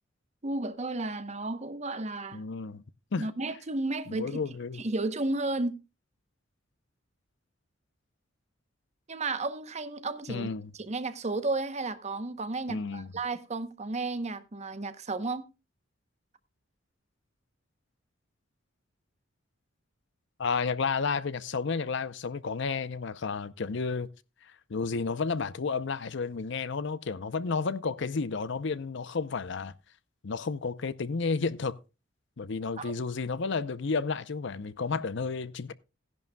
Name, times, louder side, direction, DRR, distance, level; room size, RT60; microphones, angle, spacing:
voice 1, 0.4-2.4 3.2-4.4 4.8-5.8 9.1-10.5 10.8-15.5 32.8-33.0, right 2 dB, 35° right, 0.9 m, -33 dB
voice 2, 2.3-2.8 3.1-3.3 4.1-4.8 10.3-10.7 12.7-13.1 20.4-24.1 24.7-29.7 30.2-31.7 32.4-35.7, left 4 dB, 65° left, 0.6 m, -31 dB
17.0 x 11.0 x 2.2 m
head